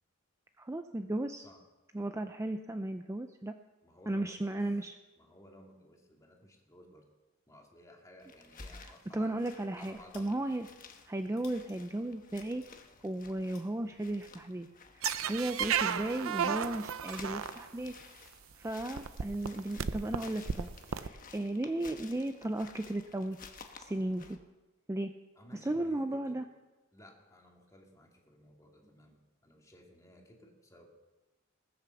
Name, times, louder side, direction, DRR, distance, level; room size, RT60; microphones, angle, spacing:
voice 1, 0.6-1.5 1.9-3.5 4.1-4.9 8.8-10.7 11.1-12.7 13.0-14.7 14.9-17.9 18.6-23.4 23.8-24.4 24.9-25.1 25.6-26.4, right 1 dB, 15° right, 7 dB, 0.4 m, -35 dB
voice 2, 3.8-4.7 5.2-7.0 7.5-9.4 9.8-10.4 25.4-26.4 26.9-30.9, left 1 dB, 15° left, 1 dB, 2.1 m, -57 dB
sound 1, 8.2-24.4, left 4 dB, 40° left, 1.1 m, -54 dB
sound 2, 9.4-14.3, left 6 dB, 85° left, 3.4 m, -61 dB
sound 3, 15.0-17.9 18.6-18.7 19.0-21.1, right 7 dB, 75° right, 0.6 m, -33 dB
20.0 x 6.9 x 7.0 m, 1.1 s
head